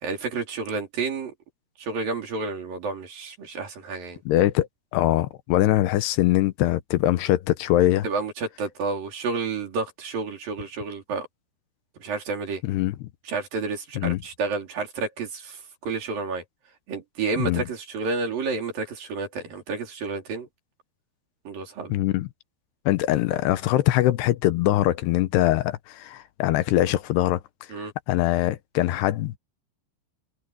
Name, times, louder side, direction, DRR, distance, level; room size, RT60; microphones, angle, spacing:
voice 1, 0.0-1.3 1.8-4.2 8.0-11.3 12.0-12.6 13.3-16.4 16.9-20.5 21.5-22.0 27.7-27.9, right 4 dB, 55° right, 5.3 m, -30 dB
voice 2, 4.3-4.7 4.9-8.1 12.6-13.0 14.0-14.2 17.4-17.6 21.9-22.3 22.9-27.4 28.1-29.4, left 15 dB, 80° left, 2.8 m, -22 dB
omnidirectional pair, 4.9 m